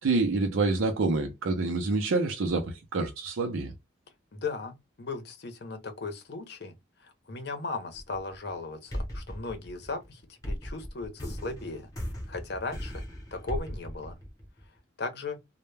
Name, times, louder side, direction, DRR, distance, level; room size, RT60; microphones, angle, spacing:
voice 1, 0.0-3.7, right 3 dB, 85° right, 0.5 m, -27 dB
voice 2, 4.3-6.7 7.0-11.9 12.3-13.0 13.3-14.2 15.0-15.4, left 3 dB, 50° left, 0.6 m, -37 dB
sound 1, 7.9-8.5 8.9-14.8, equal, 15° left, 0.7 m, -38 dB
2.1 x 2.1 x 3.1 m
head